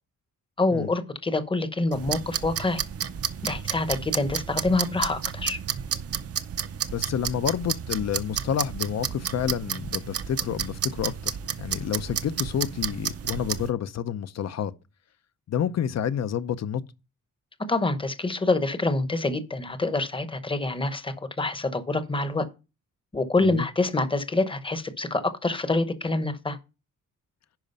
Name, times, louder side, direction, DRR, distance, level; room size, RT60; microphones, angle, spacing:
voice 1, 0.6-2.8 3.4-5.6 17.7-22.5 23.1-26.6, left 2 dB, 15° left, 0.9 m, -26 dB
sound 1, 1.9-13.7, right 8 dB, 45° right, 0.6 m, -31 dB
voice 2, 6.9-14.7 15.5-16.8 23.4-23.6, left 9 dB, 50° left, 0.7 m, -29 dB
10.5 x 5.0 x 5.4 m
wide cardioid pair, 155°, 34 cm